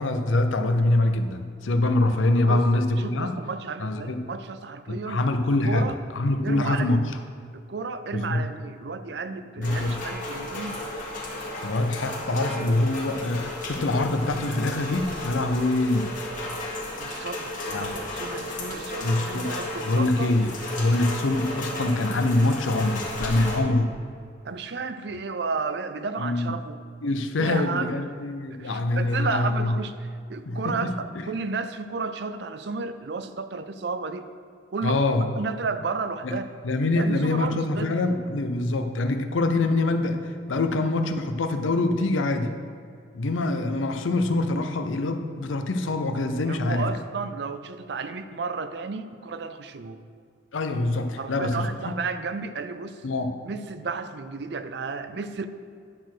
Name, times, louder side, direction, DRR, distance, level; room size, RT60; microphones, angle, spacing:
voice 1, 0.0-3.3 3.8-4.2 4.9-5.9 6.1-7.0 8.1-8.4 9.6-10.0 11.6-16.1 17.7-18.0 19.0-19.5 19.8-20.5 20.8-23.9 26.2-26.5 27.0-29.7 30.5-30.6 34.8-35.3 36.2-36.4 36.6-42.5 43.1-46.8 50.5-51.9 53.0-53.3, left 2 dB, 90° left, 7 dB, 0.7 m, -24 dB
voice 2, 2.9-5.2 5.7-6.0 6.4-7.2 7.5-10.8 17.0-20.3 24.4-26.8 27.4-28.1 28.5-34.3 34.7-35.0 35.3-36.5 36.9-38.0 46.5-50.0 51.2-53.0 53.4-55.5, right 4 dB, 60° right, 10 dB, 0.4 m, -33 dB
Rain, 9.6-23.6, left 1 dB, 40° left, 1.8 m, -34 dB
10.5 x 4.3 x 6.1 m, 2.3 s
head